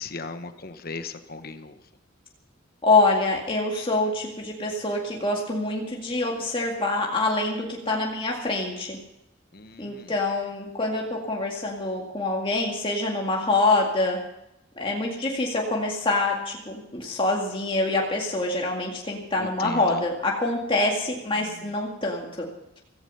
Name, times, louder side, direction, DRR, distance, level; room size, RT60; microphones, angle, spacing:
voice 1, 0.0-1.8 9.5-10.1 19.4-20.0 21.4-21.6, left 3 dB, 50° left, 9 dB, 1.2 m, -37 dB
voice 2, 2.8-9.0 9.8-14.2 14.8-22.5, left 2 dB, 25° left, -1 dB, 2.1 m, -25 dB
16.5 x 15.0 x 5.6 m, 0.89 s
head